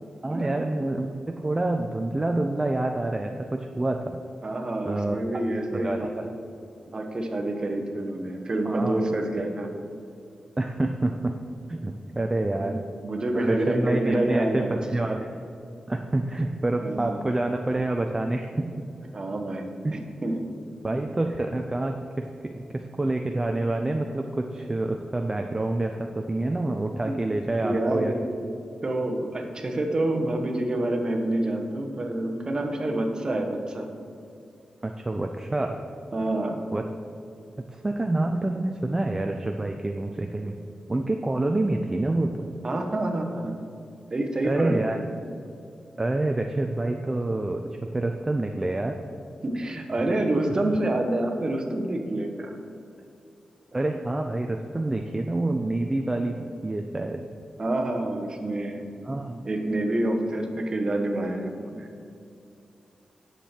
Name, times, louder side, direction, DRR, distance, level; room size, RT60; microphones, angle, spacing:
voice 1, 0.2-4.2 4.9-5.2 5.7-6.3 8.7-9.1 10.6-11.3 11.7-12.8 13.3-15.3 15.9-18.6 19.8-20.0 20.8-28.1 34.8-35.8 36.7-36.8 37.7-40.6 40.9-42.5 44.4-45.0 46.0-49.0 53.7-57.2 59.0-59.4, right 2 dB, 20° right, 4 dB, 0.5 m, -27 dB
voice 2, 4.4-6.1 6.9-9.7 12.6-15.1 16.8-17.2 19.1-19.6 19.9-20.4 27.0-27.2 27.6-28.2 28.8-33.9 36.1-36.6 42.6-43.6 44.1-45.1 49.4-52.5 57.6-58.8 59.4-61.9, right 1 dB, 35° right, 4 dB, 1.1 m, -27 dB
9.9 x 7.5 x 4.4 m, 2.5 s
wide cardioid pair, 105°, 2 cm